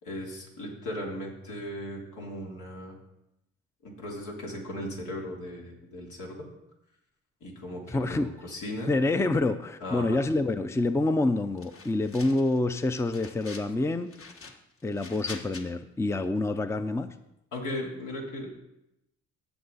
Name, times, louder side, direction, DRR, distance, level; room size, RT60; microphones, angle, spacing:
voice 1, 0.0-3.0 3.8-6.5 7.4-8.9 9.8-10.2 17.5-18.5, left 1 dB, 80° left, -2 dB, 3.4 m, -37 dB
voice 2, 7.9-8.3 8.9-14.1 14.8-17.1, left 2 dB, 10° left, 10 dB, 0.5 m, -27 dB
sound 1, 11.6-12.6 12.9-13.7 14.1-15.6, left 4 dB, 45° left, 1.4 m, -45 dB
16.5 x 7.0 x 4.0 m, 0.86 s
cardioid pair, 90°, 30 cm